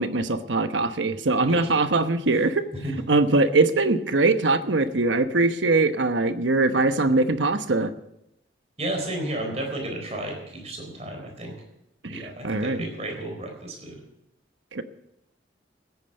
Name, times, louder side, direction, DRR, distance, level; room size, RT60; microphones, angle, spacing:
voice 1, 0.0-2.7 3.1-7.9 12.0-12.9 14.7-14.8, right 3 dB, 80° right, 10 dB, 1.0 m, -22 dB
voice 2, 8.8-11.5 12.1-14.0, right 1 dB, 35° right, 2 dB, 4.1 m, -32 dB
16.0 x 9.2 x 6.5 m, 0.83 s
head